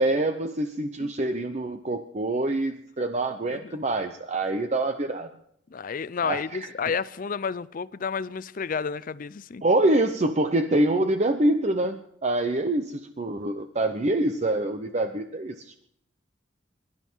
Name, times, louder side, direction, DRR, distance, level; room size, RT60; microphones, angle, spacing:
voice 1, 0.0-5.3 6.2-6.7 9.6-15.8, right 2 dB, 40° right, 0.8 m, -25 dB
voice 2, 5.7-9.6, left 6 dB, 45° left, 0.5 m, -31 dB
22.5 x 12.0 x 4.6 m
head